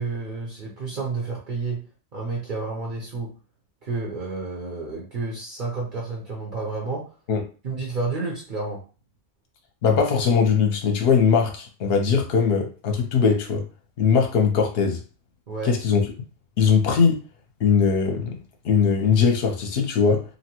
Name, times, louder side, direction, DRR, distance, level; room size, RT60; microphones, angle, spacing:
voice 1, 0.0-1.8 2.1-3.3 3.8-7.0 7.6-8.8 15.5-15.8, right 3 dB, 50° right, 0.7 m, -30 dB
voice 2, 9.8-13.6 14.0-15.0 15.6-16.0 16.6-17.2 17.6-18.4 18.6-20.2, left 6 dB, 60° left, 0.8 m, -20 dB
2.8 x 2.2 x 2.9 m
omnidirectional pair, 1.2 m